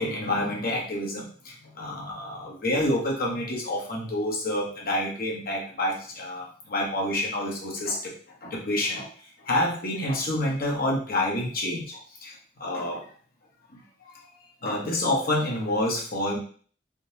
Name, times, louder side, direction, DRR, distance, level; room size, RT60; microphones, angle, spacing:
voice 1, 0.0-8.1 8.4-9.1 9.4-13.1 13.7-14.4 14.6-16.4, left 1 dB, 55° left, -2 dB, 1.0 m, -28 dB
3.7 x 2.8 x 2.7 m, 0.43 s
head